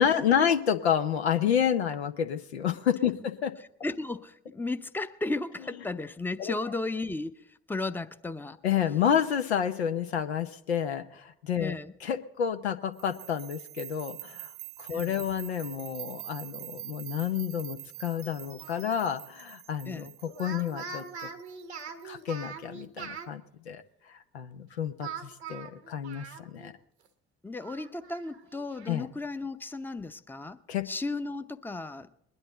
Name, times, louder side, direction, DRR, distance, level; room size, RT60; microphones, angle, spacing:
voice 1, 0.0-3.5 6.4-6.5 8.6-11.7 12.0-14.5 14.8-21.3 22.0-23.8 24.1-26.7 28.9-29.1 30.7-30.9, left 8 dB, 80° left, 0.7 m, -29 dB
voice 2, 3.8-8.6 11.6-11.9 14.9-15.2 19.9-20.1 27.4-32.1, left 2 dB, 5° left, 0.7 m, -35 dB
sound 1, 13.0-22.0, right 17 dB, 65° right, 0.5 m, -45 dB
Speech, 18.6-19.2 20.3-23.3 25.0-26.7 27.1-27.2 27.6-29.0, right 5 dB, 85° right, 1.0 m, -42 dB
21.0 x 10.5 x 3.9 m
figure-of-eight pair, 50°, 32 cm